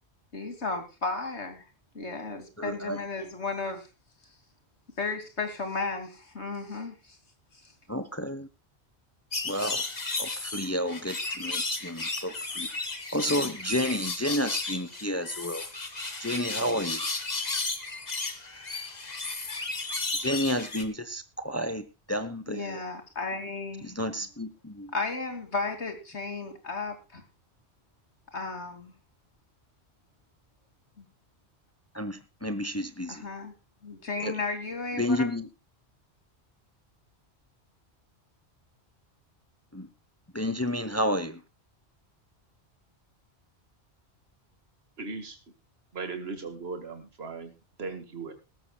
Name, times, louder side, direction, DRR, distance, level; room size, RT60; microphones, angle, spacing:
voice 1, 0.3-1.7 1.9-3.9 5.0-7.2 7.5-7.7 22.5-24.0 24.9-27.2 28.3-28.9 31.0-31.1 33.1-33.5 33.8-35.3, left 3 dB, 85° left, 3.1 m, -34 dB
voice 2, 2.6-3.0 7.9-8.5 9.4-9.8 10.2-12.7 13.1-15.7 16.2-17.0 20.2-22.8 23.8-24.9 31.9-33.3 34.2-34.4 35.0-35.5 39.7-39.9 40.3-41.4, equal, 15° left, 1.0 m, -31 dB
sound 1, 9.3-20.8, left 3 dB, 40° left, 1.8 m, -34 dB
voice 3, 45.0-45.4 45.9-48.3, right 4 dB, 65° right, 2.2 m, -38 dB
19.0 x 13.5 x 2.4 m
omnidirectional pair, 1.1 m